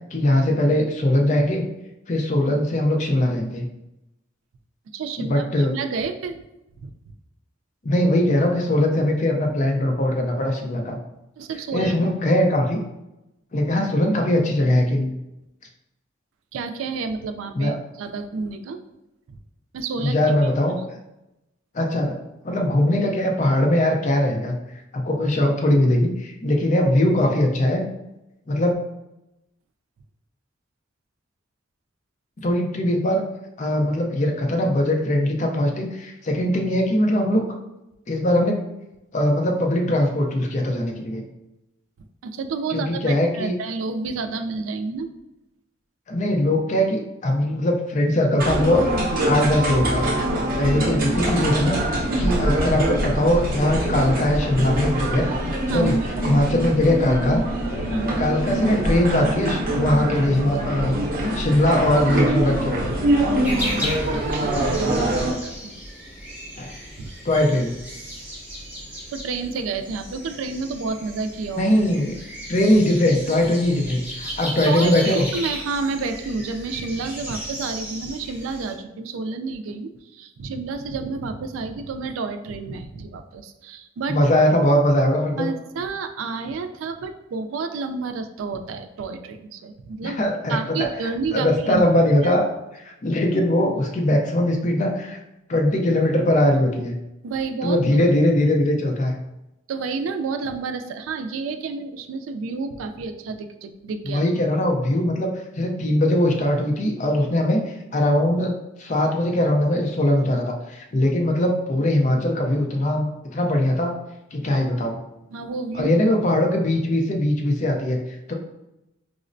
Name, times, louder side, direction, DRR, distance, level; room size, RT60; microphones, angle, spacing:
voice 1, 0.1-1.6 2.1-3.7 5.2-5.7 7.8-11.0 11.7-12.8 13.5-15.1 17.5-17.7 20.0-20.8 21.7-22.2 22.4-24.6 24.9-27.8 28.5-28.8 32.4-33.2 33.6-37.4 38.1-38.6 39.1-41.2 42.7-43.5 46.1-50.1 50.6-51.8 52.2-55.3 55.7-56.0 56.2-57.4 58.2-61.0 61.3-62.9 66.6-66.7 67.2-67.7 71.5-72.1 72.5-75.3 84.1-85.5 90.0-92.4 92.7-95.2 95.5-96.9 97.6-99.1 104.0-105.3 105.5-107.6 107.9-113.9 114.3-115.0 115.7-118.0 118.3-118.4, left 1 dB, 35° left, 1 dB, 0.5 m, -21 dB
voice 2, 4.9-6.4 6.8-6.9 11.4-12.1 16.5-18.8 19.7-20.1 20.4-20.5 42.2-45.1 55.7-55.9 56.3-56.4 57.9-58.3 64.3-65.8 67.0-67.1 69.1-71.7 74.7-84.2 84.5-84.7 85.4-90.2 90.5-91.8 92.2-92.3 97.2-98.0 99.7-104.2 115.3-115.9, right 4 dB, 80° right, 8 dB, 0.3 m, -30 dB
sound 1, 48.4-65.3, right 1 dB, 45° right, 0.7 m, -24 dB
sound 2, 63.4-78.7, equal, 10° right, 0.7 m, -35 dB
4.9 x 2.0 x 2.5 m, 0.91 s
head